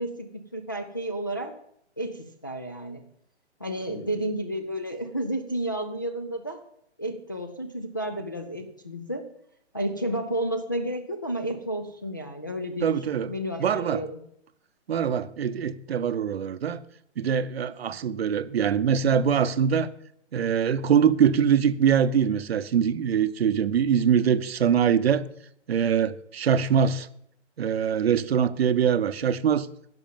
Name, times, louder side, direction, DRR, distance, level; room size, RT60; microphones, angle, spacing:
voice 1, 0.0-1.5 2.0-3.0 3.6-6.6 7.0-9.2 9.7-12.9 13.3-14.2, right 1 dB, 20° left, 0.4 m, -31 dB
voice 2, 12.8-13.3 13.6-14.0 14.9-16.8 17.2-19.9 20.3-25.3 25.7-27.1 27.6-29.7, right 8 dB, 60° right, 0.8 m, -23 dB
11.0 x 6.1 x 9.0 m
hypercardioid pair, 155°, 35 cm